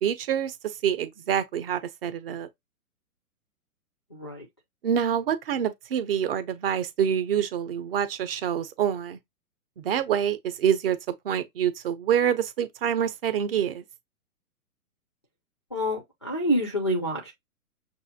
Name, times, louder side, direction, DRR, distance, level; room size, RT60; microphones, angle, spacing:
voice 1, 0.0-2.5 4.8-9.2 9.8-11.0 11.2-13.8, right 9 dB, 40° right, 0.7 m, -26 dB
voice 2, 4.1-4.5 15.7-17.3, equal, 20° left, 0.3 m, -27 dB
6.0 x 2.5 x 2.7 m
hypercardioid pair, 145°, 45 cm